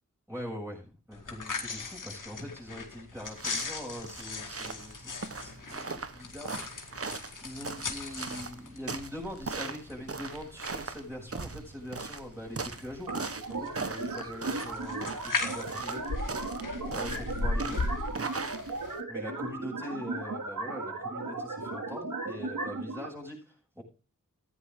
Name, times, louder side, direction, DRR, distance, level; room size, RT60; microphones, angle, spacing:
voice 1, 0.3-5.1 5.4-6.6 6.9-16.0 16.5-17.8 19.1-23.8, equal, 5° right, -3 dB, 7.4 m, -42 dB
Eating Crackers, 1.1-18.9, left 3 dB, 75° left, 2.2 m, -39 dB
sound 1, 3.2-19.0, right 4 dB, 45° right, 1.3 m, -40 dB
sound 2, 13.1-23.1, right 3 dB, 75° right, 2.8 m, -36 dB
14.5 x 9.9 x 3.8 m, 0.33 s
cardioid pair, 40°, 32 cm